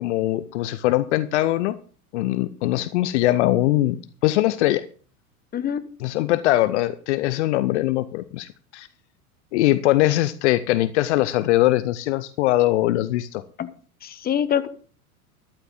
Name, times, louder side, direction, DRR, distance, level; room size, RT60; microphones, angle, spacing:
voice 1, 0.0-1.8 2.1-4.0 4.2-4.8 6.0-8.9 9.5-13.4, left 16 dB, 50° left, 15 dB, 0.8 m, -21 dB
voice 2, 14.0-14.7, left 9 dB, 20° left, 12 dB, 1.1 m, -24 dB
13.0 x 12.0 x 3.8 m, 0.41 s
figure-of-eight pair, 90°, 44 cm